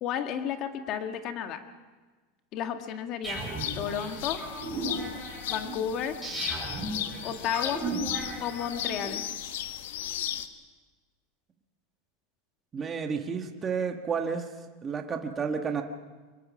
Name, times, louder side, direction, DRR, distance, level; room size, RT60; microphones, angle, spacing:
voice 1, 0.0-1.6 2.5-4.4 5.5-6.2 7.2-7.9 8.4-9.3, left 9 dB, 35° left, 6 dB, 1.7 m, -32 dB
sound 1, 3.2-10.5, left 11 dB, 90° left, 1.4 m, -36 dB
sound 2, 3.2-9.0, right 2 dB, ahead, 7.6 m, -36 dB
voice 2, 12.7-14.5 14.8-15.8, right 6 dB, 15° right, 4 dB, 1.3 m, -31 dB
24.5 x 22.0 x 6.2 m, 1.3 s
supercardioid pair, 175°, 0 cm